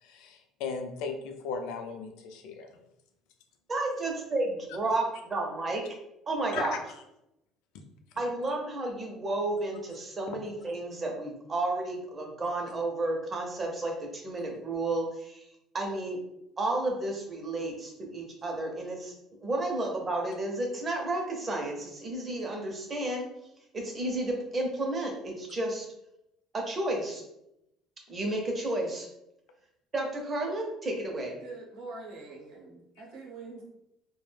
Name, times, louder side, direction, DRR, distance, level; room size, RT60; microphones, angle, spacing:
voice 1, 0.0-2.8 6.5-6.8, left 5 dB, 80° left, 5 dB, 0.4 m, -37 dB
voice 2, 3.7-5.8 6.3-6.8 8.2-15.5 15.7-16.2 16.6-19.1 19.4-23.3 23.7-25.9 26.5-27.2 28.1-29.1 29.9-31.4, right 2 dB, 20° right, 1 dB, 0.5 m, -32 dB
voice 3, 31.4-33.6, right 3 dB, 75° right, -1 dB, 0.7 m, -44 dB
2.3 x 2.1 x 3.2 m, 0.83 s
cardioid pair, 165°, 0 cm